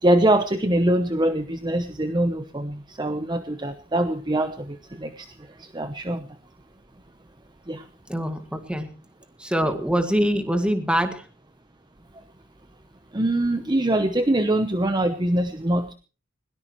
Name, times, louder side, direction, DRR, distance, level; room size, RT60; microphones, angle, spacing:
voice 1, 0.0-6.3 7.7-7.8 13.1-15.9, right 1 dB, 20° right, 9 dB, 0.9 m, -23 dB
voice 2, 8.1-8.9 9.4-11.2, equal, 5° right, 7 dB, 1.9 m, -24 dB
21.0 x 18.0 x 3.1 m, 0.36 s
head